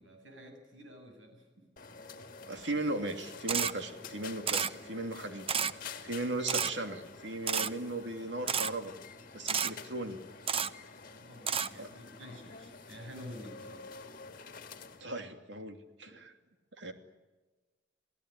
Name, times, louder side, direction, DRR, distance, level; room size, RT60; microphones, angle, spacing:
voice 1, 0.0-1.7 4.7-5.1 5.7-5.9 9.8-13.9 16.1-16.2, left 1 dB, 90° right, 5 dB, 7.6 m, -51 dB
sound 1, 1.8-15.0, left 4 dB, 50° left, 2.0 m, -49 dB
voice 2, 2.4-5.5 6.0-8.9 9.3-10.2 11.8-11.9 15.0-16.3 16.8-16.9, right 2 dB, 70° right, 6 dB, 2.9 m, -37 dB
Camera, 3.5-3.7 4.5-4.7 5.5-5.7 6.5-6.7 7.5-7.7 8.5-8.7 9.5-9.7 10.5-10.7 11.5-11.7, right 7 dB, 30° right, 0.8 m, -30 dB
28.5 x 18.0 x 9.9 m, 1.2 s
head